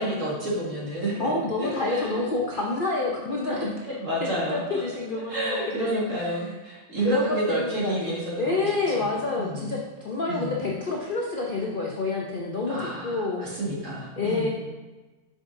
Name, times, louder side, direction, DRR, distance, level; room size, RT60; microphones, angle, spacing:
voice 1, 0.0-1.3 1.6-2.2 3.9-4.8 5.3-9.1 9.4-9.8 10.3-10.6 12.7-14.5, right 1 dB, 50° right, -6 dB, 2.2 m, -30 dB
voice 2, 1.2-3.7 4.5-6.0 7.0-13.5 14.2-14.5, left 3 dB, 60° left, -2 dB, 0.5 m, -28 dB
7.2 x 6.2 x 2.6 m, 1.2 s
omnidirectional pair, 1.8 m